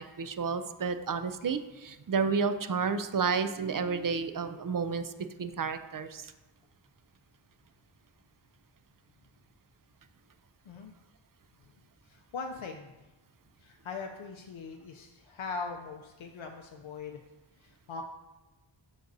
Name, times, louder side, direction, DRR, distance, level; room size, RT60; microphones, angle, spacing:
voice 1, 0.0-5.1 5.4-6.3, right 5 dB, 45° right, 10 dB, 0.4 m, -31 dB
voice 2, 12.1-12.9 13.6-17.2 17.6-18.0, left 4 dB, 85° left, 3 dB, 0.6 m, -40 dB
11.5 x 4.0 x 2.6 m, 1.1 s
wide cardioid pair, 85°, 47 cm